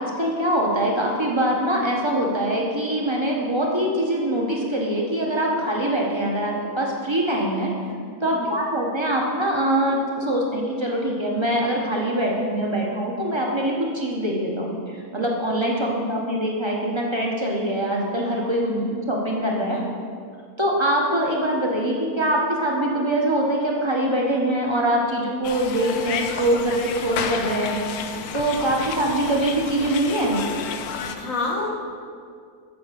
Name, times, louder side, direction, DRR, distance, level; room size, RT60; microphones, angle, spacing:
voice 1, 0.0-7.7 8.2-19.8 20.6-30.5, right 1 dB, 20° right, -2 dB, 1.1 m, -23 dB
voice 2, 8.3-8.6 18.4-18.9 19.7-19.8 31.2-31.7, left 2 dB, 60° left, 0 dB, 1.7 m, -30 dB
sound 1, 25.4-31.2, left 7 dB, 80° left, 1.1 m, -31 dB
8.1 x 5.4 x 6.9 m, 2.2 s
omnidirectional pair, 1.6 m